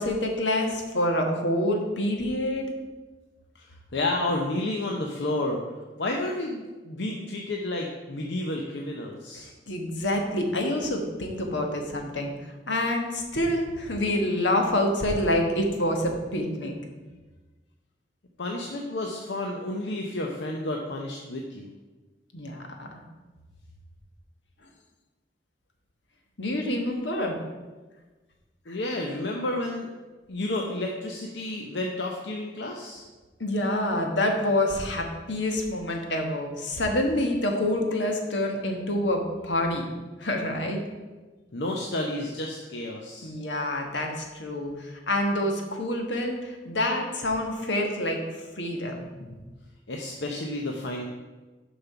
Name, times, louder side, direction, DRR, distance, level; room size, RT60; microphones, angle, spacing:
voice 1, 0.0-2.6 9.7-12.3 12.7-16.8 22.3-23.0 26.4-27.4 28.7-28.8 33.4-39.8 40.2-40.8 43.2-49.4, left 1 dB, 85° left, 3 dB, 1.4 m, -27 dB
voice 2, 3.5-5.6 6.0-9.5 18.4-21.7 28.7-29.9 30.3-33.1 41.5-43.3 49.9-51.0, left 1 dB, 70° left, 0 dB, 0.8 m, -31 dB
6.9 x 5.6 x 5.7 m, 1.2 s
head